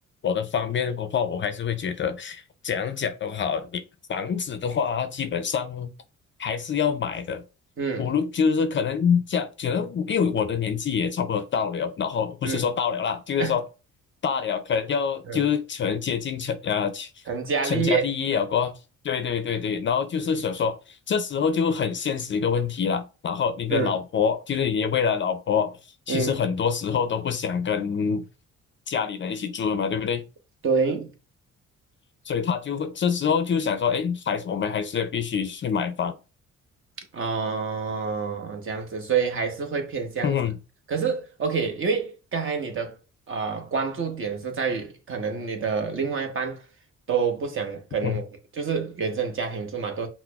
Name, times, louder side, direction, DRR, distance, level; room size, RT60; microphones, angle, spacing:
voice 1, 0.2-3.8 4.1-5.9 6.4-7.4 8.0-13.7 14.2-17.1 17.6-18.8 19.0-25.8 26.1-28.2 28.9-30.2 32.3-36.2 40.2-40.6 48.0-48.2, left 7 dB, 40° left, 0.4 m, -26 dB
voice 2, 7.8-8.1 12.4-12.7 13.4-13.6 15.3-15.5 17.3-18.1 23.7-24.0 26.1-26.4 30.6-31.1 37.1-40.4 40.9-43.0 43.3-46.6 47.1-48.2 48.5-50.1, right 5 dB, 45° right, 0.9 m, -27 dB
5.8 x 2.0 x 2.2 m
cardioid pair, 90°, 30 cm